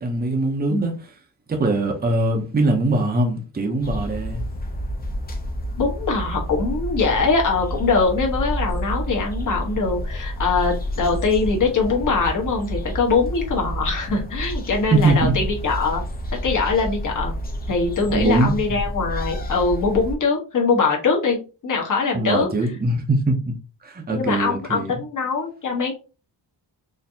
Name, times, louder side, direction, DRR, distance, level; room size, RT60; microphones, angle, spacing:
voice 1, 0.0-0.9 1.5-4.4 14.9-15.3 18.1-18.6 22.1-23.6 23.8-24.9, right 2 dB, 20° right, 0.6 m, -21 dB
sound 1, 3.8-20.2, equal, 20° left, 0.5 m, -29 dB
voice 2, 5.8-16.0 16.4-17.3 17.7-22.5 24.1-25.9, left 4 dB, 45° left, 1.2 m, -22 dB
4.2 x 2.6 x 2.7 m
wide cardioid pair, 175°, 42 cm